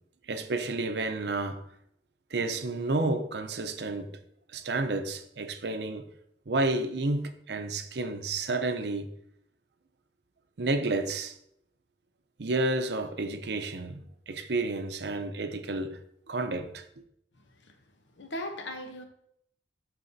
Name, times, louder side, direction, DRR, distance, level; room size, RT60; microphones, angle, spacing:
voice 1, 0.3-1.7 2.3-4.1 4.5-6.1 6.5-9.1 10.6-11.3 12.4-16.0 16.3-16.8, right 2 dB, 65° right, 0.7 m, -30 dB
voice 2, 18.2-19.0, left 1 dB, 85° left, 0.9 m, -38 dB
12.0 x 4.1 x 2.7 m
head